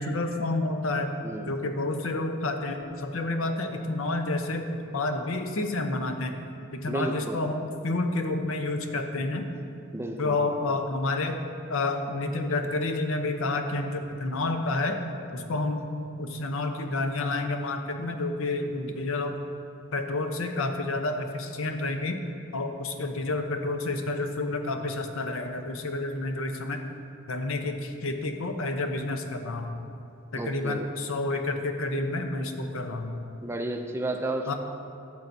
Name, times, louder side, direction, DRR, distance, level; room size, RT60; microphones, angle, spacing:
voice 1, 0.0-1.2 1.5-6.4 6.7-9.5 10.2-11.4 11.7-15.0 15.3-19.3 19.9-22.2 22.5-26.8 27.3-29.7 30.3-33.2 34.5-34.6, left 2 dB, 65° left, 5 dB, 0.7 m, -29 dB
voice 2, 1.2-1.5 6.9-7.4 9.9-10.5 30.3-30.9 33.4-34.5, right 1 dB, 10° right, 5 dB, 0.3 m, -32 dB
12.0 x 7.1 x 2.6 m, 2.9 s
head